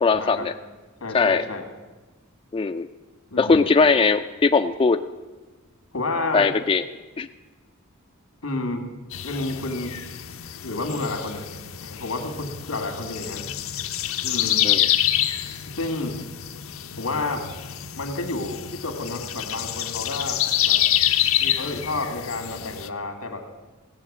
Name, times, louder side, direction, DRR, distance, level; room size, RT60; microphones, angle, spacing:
voice 1, 0.0-0.5 1.1-1.4 2.5-2.9 3.4-5.0 6.3-6.8 7.2-7.3 14.6-14.9, left 4 dB, 25° left, 9 dB, 0.3 m, -20 dB
voice 2, 1.0-1.7 3.3-3.7 5.9-6.5 8.4-8.9 9.2-10.0 10.6-11.5 11.8-13.5 14.2-14.7 15.7-16.2 17.0-17.5 18.0-20.8 21.4-23.4, left 2 dB, 90° left, 5 dB, 2.0 m, -30 dB
sound 1, 9.1-22.9, left 12 dB, 70° left, 0.7 m, -27 dB
17.0 x 7.2 x 7.3 m, 1.2 s
head